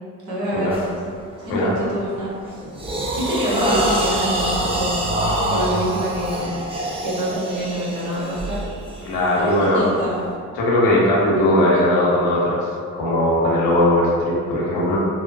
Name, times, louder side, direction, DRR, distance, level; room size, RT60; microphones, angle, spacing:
voice 1, 0.3-0.8 1.5-2.6 3.2-5.1 5.5-6.6 7.0-8.6 9.4-10.2 11.7-11.8, equal, 50° right, -8 dB, 1.2 m, -26 dB
sound 1, 0.7-0.9 1.4-1.7 2.2-10.3, right 1 dB, 15° right, 0.6 m, -25 dB
voice 2, 9.0-9.8 10.5-12.6 12.9-15.0, left 1 dB, 75° left, -5 dB, 0.8 m, -18 dB
2.9 x 2.1 x 2.6 m, 2.2 s
hypercardioid pair, 50°, 37 cm